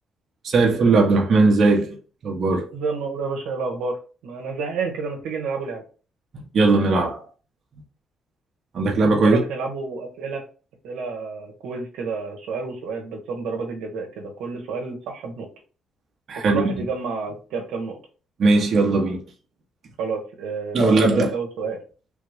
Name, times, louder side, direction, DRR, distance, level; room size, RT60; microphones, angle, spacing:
voice 1, 0.4-2.0 2.2-2.6 6.3-7.2 8.7-9.4 16.3-16.6 18.4-19.2 20.7-21.3, right 3 dB, 55° right, 1.0 m, -18 dB
voice 2, 2.7-5.8 9.2-10.4 10.8-15.5 16.4-18.0 20.0-21.8, right 4 dB, 90° right, 1.1 m, -30 dB
3.5 x 2.4 x 3.4 m
cardioid pair, 90°, 0 cm